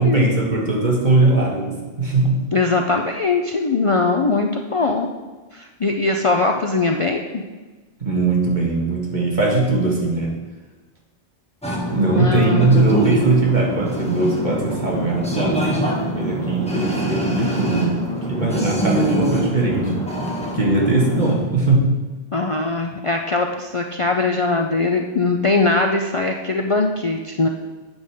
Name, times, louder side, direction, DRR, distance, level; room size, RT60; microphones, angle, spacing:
voice 1, 0.0-2.4 8.0-10.3 11.6-15.8 16.1-18.0 18.3-19.9 20.5-22.0, right 2 dB, 45° right, -2 dB, 1.9 m, -20 dB
voice 2, 2.5-5.1 5.5-7.4 12.2-12.9 22.3-27.5, left 3 dB, 40° left, 2 dB, 0.5 m, -21 dB
sound 1, 11.6-21.3, right 1 dB, 5° left, 1.6 m, -24 dB
8.8 x 5.3 x 6.5 m, 1.3 s
omnidirectional pair, 1.0 m